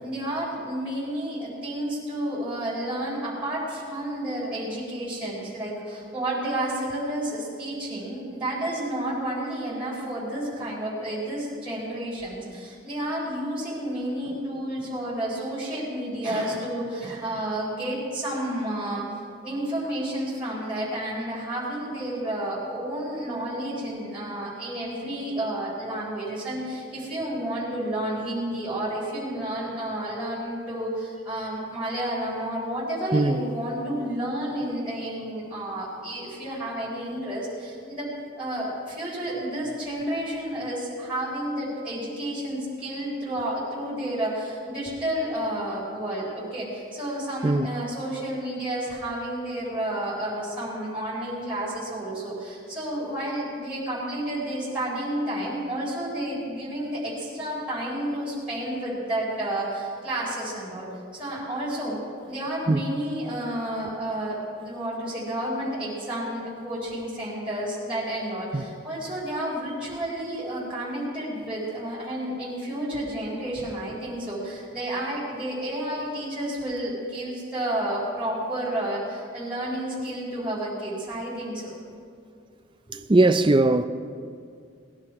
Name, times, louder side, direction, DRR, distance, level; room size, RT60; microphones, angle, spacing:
voice 1, 0.0-19.0 19.4-38.1 38.4-62.0 62.3-81.8 82.9-83.0, right 1 dB, 5° right, 4.2 m, -31 dB
voice 2, 83.1-83.8, right 2 dB, 25° right, 0.4 m, -19 dB
19.5 x 11.5 x 4.8 m
head